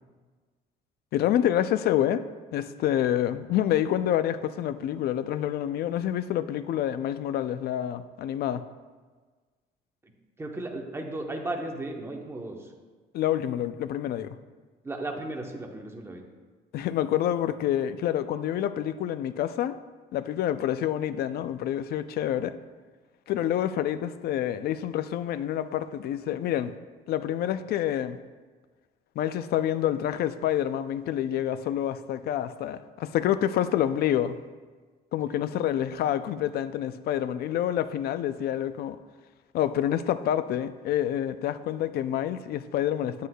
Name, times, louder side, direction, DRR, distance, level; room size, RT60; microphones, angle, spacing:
voice 1, 1.1-2.3 2.5-8.6 13.1-14.4 16.7-19.8 20.1-22.6 23.3-26.7 27.1-28.2 29.2-34.4 35.1-39.0 39.5-43.3, left 11 dB, 65° left, 12 dB, 0.4 m, -27 dB
voice 2, 10.4-12.7 14.8-16.2 35.3-35.4, right 2 dB, 15° right, 2 dB, 0.9 m, -35 dB
9.4 x 8.2 x 2.3 m, 1.4 s
cardioid pair, 130°, 17 cm